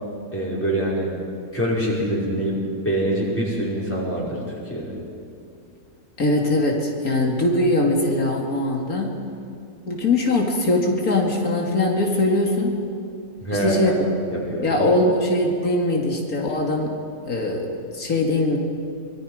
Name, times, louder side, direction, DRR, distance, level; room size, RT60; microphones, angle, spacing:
voice 1, 0.3-1.1 1.5-4.4 4.7-4.9 13.4-14.0 14.3-14.9, right 1 dB, 10° left, -6 dB, 5.3 m, -24 dB
voice 2, 6.2-9.2 9.9-12.7 13.5-13.9 14.6-16.9 17.2-17.7 17.9-18.6, left 2 dB, 85° left, 0 dB, 2.8 m, -21 dB
24.0 x 22.5 x 5.1 m, 2.5 s
omnidirectional pair, 1.5 m